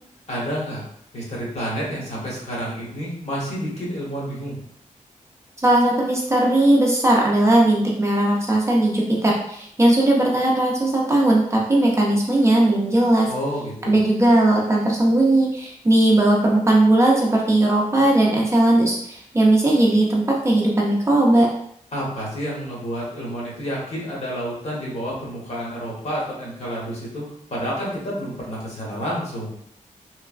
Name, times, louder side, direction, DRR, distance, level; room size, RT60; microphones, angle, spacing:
voice 1, 0.3-0.8 1.1-4.5 13.3-14.0 21.9-29.5, equal, 55° left, -5 dB, 1.0 m, -29 dB
voice 2, 5.6-13.3 13.9-21.5, right 1 dB, 20° right, -3 dB, 0.4 m, -18 dB
3.0 x 2.0 x 2.4 m, 0.67 s
wide cardioid pair, 160°, 13 cm